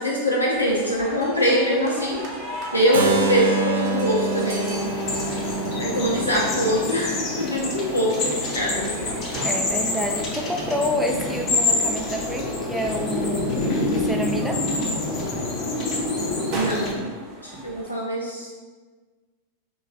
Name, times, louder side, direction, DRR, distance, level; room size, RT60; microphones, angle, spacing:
voice 1, 0.0-2.2 2.7-4.9 5.8-9.1 16.5-16.9 17.4-18.5, equal, 85° left, -5 dB, 0.6 m, -23 dB
sound 1, 0.5-17.9, right 1 dB, 40° right, 0.7 m, -38 dB
Keyboard (musical), 2.9-8.8, right 3 dB, 65° right, 0.4 m, -28 dB
sound 2, 3.8-16.9, left 2 dB, 35° left, 0.7 m, -27 dB
voice 2, 9.4-13.6 13.9-14.6 17.6-17.7, equal, 5° right, 1 dB, 0.4 m, -28 dB
3.0 x 2.3 x 4.0 m, 1.4 s
figure-of-eight pair, 90°, 0 cm